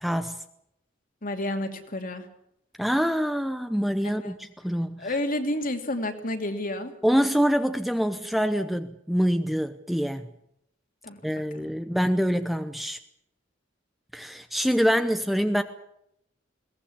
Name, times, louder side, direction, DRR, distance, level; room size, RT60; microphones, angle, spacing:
voice 1, 0.0-0.4 2.8-5.1 7.0-10.3 11.2-13.0 14.1-15.6, equal, ahead, 9 dB, 0.9 m, -25 dB
voice 2, 1.2-2.3 4.0-4.3 5.0-6.9 11.0-11.7, left 1 dB, 45° left, 6 dB, 2.7 m, -31 dB
21.5 x 18.5 x 8.6 m, 0.76 s
head